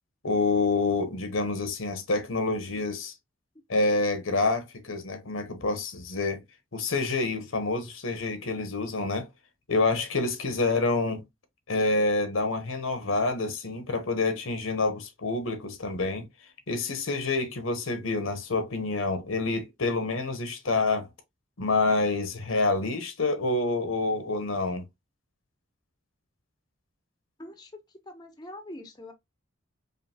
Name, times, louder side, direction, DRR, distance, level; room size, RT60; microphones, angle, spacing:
voice 1, 0.2-3.1 3.7-6.4 6.7-9.3 9.7-11.2 11.7-16.3 16.7-21.1 21.6-24.9, left 3 dB, 80° left, 0.9 m, -27 dB
voice 2, 27.4-27.7 28.1-29.1, left 1 dB, 20° left, 0.7 m, -43 dB
5.1 x 2.6 x 2.7 m
head